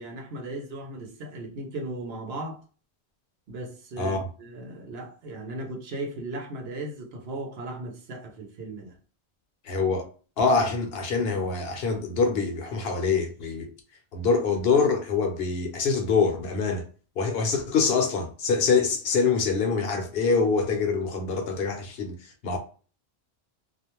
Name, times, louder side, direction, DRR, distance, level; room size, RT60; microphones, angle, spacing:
voice 1, 0.0-2.6 3.5-8.9, right 2 dB, 70° right, 0.9 m, -37 dB
voice 2, 9.7-10.1 10.4-13.7 14.1-16.8 17.2-22.1 22.4-22.6, left 4 dB, 70° left, 0.9 m, -25 dB
2.4 x 2.1 x 2.9 m
omnidirectional pair, 1.1 m